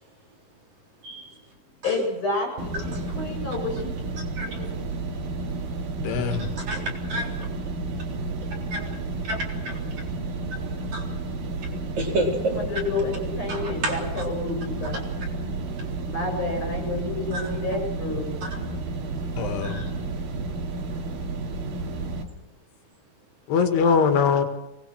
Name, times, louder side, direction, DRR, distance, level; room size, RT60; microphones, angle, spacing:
voice 1, 1.0-1.4 2.9-3.1 4.4-4.7 6.4-7.4 8.7-8.9 9.2-9.8 10.9-11.0 12.0-12.5 13.5-14.0 17.3-17.4 19.6-19.9, right 1 dB, 45° right, 0 dB, 5.1 m, -30 dB
voice 2, 1.8-4.0 12.3-15.0 16.1-18.4, left 2 dB, 50° left, 2 dB, 9.5 m, -30 dB
sound 1, 2.6-22.2, right 3 dB, 65° right, 4.1 m, -31 dB
voice 3, 6.0-6.5 19.4-19.8 23.5-24.4, left 5 dB, 90° left, 7 dB, 4.0 m, -22 dB
24.0 x 21.0 x 6.3 m, 0.97 s
omnidirectional pair, 4.6 m